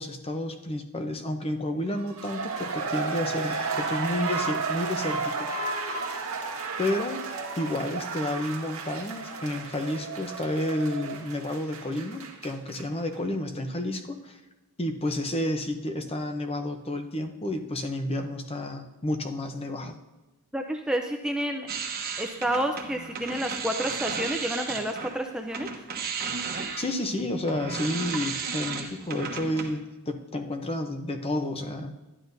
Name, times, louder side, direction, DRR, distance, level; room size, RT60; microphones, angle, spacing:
voice 1, 0.0-5.5 6.8-7.2 7.6-14.4 14.8-20.0 26.8-31.9, left 1 dB, 25° left, 6 dB, 0.7 m, -31 dB
sound 1, 2.0-12.8 13.1-13.2, right 4 dB, 80° right, 1.4 m, -33 dB
voice 2, 20.5-21.7 22.2-25.7, right 1 dB, 5° right, 3 dB, 0.5 m, -29 dB
sound 2, 21.7-25.2 25.5-29.8, right 5 dB, 45° right, 1.0 m, -34 dB
12.5 x 10.5 x 2.7 m, 1.1 s
head